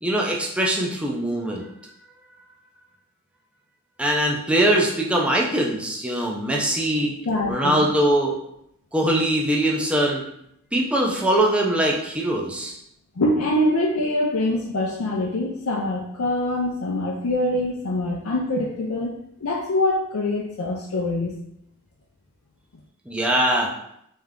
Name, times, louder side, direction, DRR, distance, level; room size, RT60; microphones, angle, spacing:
voice 1, 0.0-1.7 4.0-7.1 7.5-8.4 8.9-10.2 10.7-12.8 23.1-23.7, right 1 dB, 5° right, -1 dB, 0.6 m, -22 dB
voice 2, 7.3-7.8 13.2-19.1 19.4-21.3, left 1 dB, 80° left, -2 dB, 0.6 m, -24 dB
3.6 x 3.3 x 3.6 m, 0.75 s
head